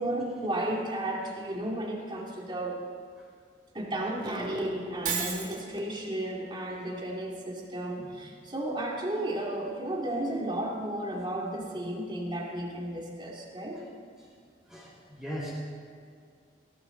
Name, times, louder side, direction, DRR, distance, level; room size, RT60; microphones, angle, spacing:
voice 1, 0.0-2.8 3.7-13.8, right 1 dB, 25° right, -2 dB, 2.7 m, -33 dB
Shatter, 5.0-5.6, right 6 dB, 45° right, 2.3 m, -31 dB
voice 2, 14.7-15.5, equal, 5° right, -7 dB, 5.4 m, -39 dB
21.0 x 17.5 x 4.0 m, 2.2 s
head